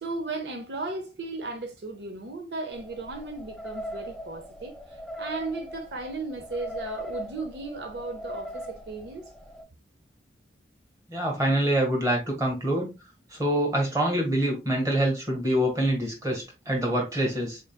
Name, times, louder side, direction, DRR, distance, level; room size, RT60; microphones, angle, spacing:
voice 1, 0.0-4.7 5.2-9.3, right 3 dB, 70° right, 0.6 m, -35 dB
sound 1, 2.7-9.6, equal, 5° left, 0.4 m, -40 dB
voice 2, 11.1-12.9 13.3-17.6, right 1 dB, 20° right, 1.3 m, -25 dB
3.8 x 3.7 x 2.2 m
head